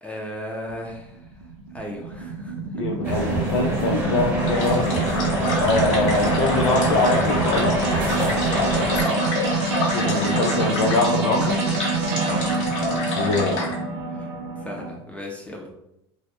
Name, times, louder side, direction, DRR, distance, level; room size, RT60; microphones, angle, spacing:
voice 1, 0.0-1.5 1.7-3.4 9.0-9.4 12.3-13.1 14.1-14.3 14.6-15.7, left 1 dB, 10° left, -1 dB, 0.5 m, -36 dB
sound 1, 0.7-14.9, right 3 dB, 75° right, 0.5 m, -26 dB
voice 2, 2.8-5.0 5.6-7.8 9.9-11.6 13.1-13.6, left 3 dB, 75° left, 0 dB, 0.4 m, -23 dB
sound 2, 3.0-9.0, equal, 15° right, 0.9 m, -27 dB
sound 3, 4.5-13.7, left 3 dB, 55° left, 0.9 m, -29 dB
2.2 x 2.0 x 2.8 m, 0.80 s
hypercardioid pair, 80°, 14 cm